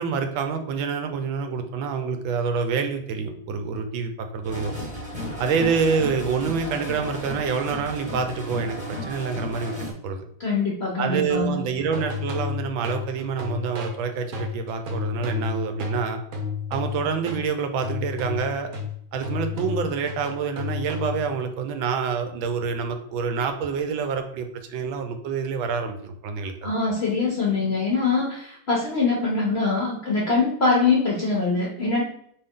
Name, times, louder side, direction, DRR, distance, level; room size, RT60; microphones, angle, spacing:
voice 1, 0.0-4.7 5.4-10.2 11.0-16.2 16.7-18.7 19.1-26.7, right 5 dB, 80° right, 7 dB, 1.4 m, -27 dB
sound 1, 4.4-9.9, left 1 dB, 5° right, 0.9 m, -34 dB
voice 2, 10.4-11.6 26.6-32.0, left 3 dB, 55° left, -3 dB, 0.7 m, -23 dB
sound 2, 11.8-17.5 17.8-21.4, left 5 dB, 55° right, 1.0 m, -31 dB
4.4 x 3.3 x 3.6 m, 0.67 s
omnidirectional pair, 2.2 m